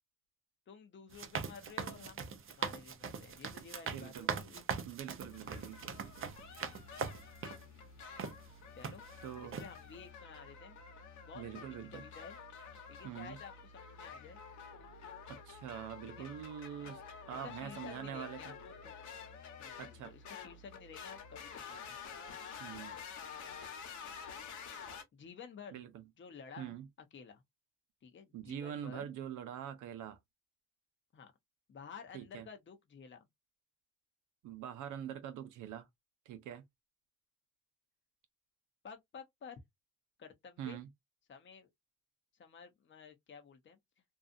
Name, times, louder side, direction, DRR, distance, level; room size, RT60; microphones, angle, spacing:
voice 1, 0.7-4.6 8.7-9.0 9.4-10.8 11.3-12.4 12.9-14.4 16.0-16.3 16.8-17.0 17.3-18.9 19.6-22.0 25.1-25.8 26.2-26.8 27.1-27.4 28.0-29.1 31.1-31.3 31.7-33.3 38.8-39.6 40.2-40.8 41.3-41.7 42.4-43.8, left 6 dB, 40° left, 0.8 m, -52 dB
sound 1, 1.1-7.6 8.2-8.3 8.8-9.2 9.5-9.7, right 6 dB, 45° right, 0.6 m, -41 dB
voice 2, 3.9-4.3 4.9-6.3 9.2-9.6 11.3-12.0 13.0-13.4 15.3-17.0 17.3-18.5 19.8-20.1 22.6-23.0 25.7-26.0 26.6-26.9 28.3-30.2 32.1-32.5 34.4-35.9 36.3-36.6 40.6-40.9, right 10 dB, 85° right, 0.6 m, -44 dB
sound 2, 5.2-25.0, left 6 dB, 75° left, 1.1 m, -49 dB
2.6 x 2.4 x 2.5 m
cardioid pair, 90°, 30 cm